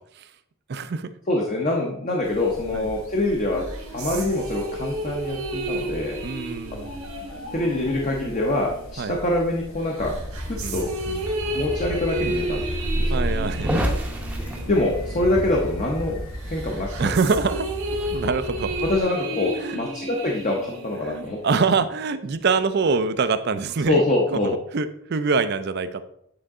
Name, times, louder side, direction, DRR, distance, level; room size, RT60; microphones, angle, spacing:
voice 1, 0.7-1.1 2.7-2.9 6.2-6.9 9.0-9.2 10.6-11.2 13.1-13.9 17.0-17.7 18.1-18.7 19.6-19.8 21.0-24.0 24.3-24.4 24.7-26.0, right 4 dB, 50° right, 12 dB, 0.4 m, -24 dB
voice 2, 1.3-3.6 3.9-6.2 7.2-10.2 10.5-10.9 11.5-12.6 12.9-13.2 14.7-16.2 16.5-17.1 18.8-21.4 23.9-24.6, left 2 dB, 35° left, -1 dB, 0.7 m, -25 dB
sound 1, 2.2-17.0, equal, 70° left, 1.0 m, -36 dB
sound 2, 3.5-9.5 10.0-16.0 16.4-21.5, right 1 dB, 80° right, 1.4 m, -33 dB
sound 3, 10.0-19.0, equal, 5° right, 0.7 m, -32 dB
8.8 x 3.8 x 3.6 m, 0.74 s
head